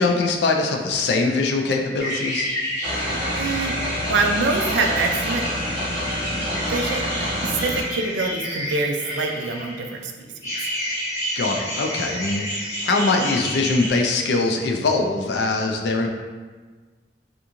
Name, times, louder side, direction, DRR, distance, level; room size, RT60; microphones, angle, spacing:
voice 1, 0.0-2.5 11.4-16.1, left 3 dB, 70° left, 2 dB, 0.4 m, -22 dB
sound 1, 2.0-9.9 10.4-13.9, equal, 20° left, 1.1 m, -30 dB
sound 2, 2.8-7.8, equal, 30° right, 0.9 m, -27 dB
voice 2, 3.3-3.7 4.1-5.5 6.6-10.5, right 3 dB, 90° right, 3 dB, 0.4 m, -25 dB
3.5 x 2.5 x 2.9 m, 1.4 s
head